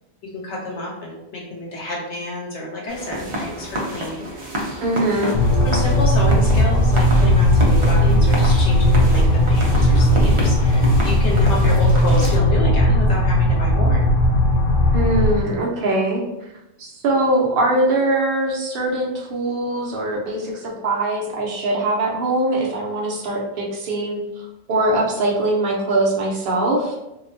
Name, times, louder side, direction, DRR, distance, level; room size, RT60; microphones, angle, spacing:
voice 1, 0.2-4.3 4.5-4.8 5.2-5.4 5.6-14.0, left 2 dB, 85° left, -3 dB, 1.1 m, -29 dB
sound 1, 2.9-12.4, equal, 40° right, 0.5 m, -29 dB
voice 2, 4.8-5.4 14.9-16.2 16.8-24.2 24.7-27.0, right 2 dB, 60° right, -3 dB, 0.8 m, -22 dB
sound 2, 5.3-15.4, left 1 dB, 60° left, 0.7 m, -16 dB
2.7 x 2.1 x 2.6 m, 0.93 s
omnidirectional pair, 1.2 m